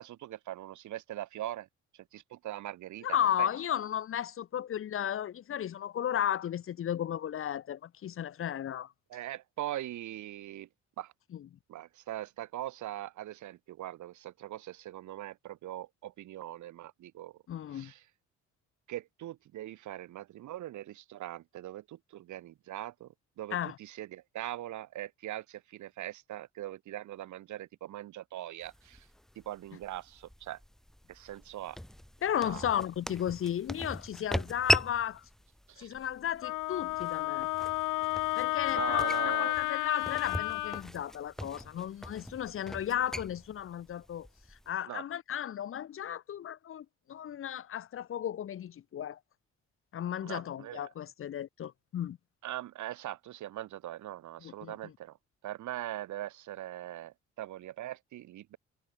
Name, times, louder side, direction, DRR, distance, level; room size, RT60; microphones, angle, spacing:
voice 1, 0.0-1.7 2.1-3.5 9.1-10.7 11.0-11.1 11.7-17.3 17.7-18.0 18.9-23.1 23.4-29.0 29.4-30.6 31.1-31.8 32.4-32.6 35.7-35.9 38.7-39.6 44.9-45.0 50.2-50.9 52.4-55.2 55.4-58.6, right 14 dB, 75° right, 1.2 m, -41 dB
voice 2, 3.0-8.9 11.3-11.5 17.5-17.9 23.5-23.8 32.2-35.2 35.8-37.5 38.4-44.3 44.7-49.2 49.9-52.2 54.4-54.9, left 10 dB, 45° left, 0.6 m, -34 dB
sound 1, 28.6-44.7, equal, ahead, 0.5 m, -39 dB
Wind instrument woodwind instrument, 36.4-40.8, left 20 dB, 90° left, 0.5 m, -31 dB
cardioid pair, 90°, 30 cm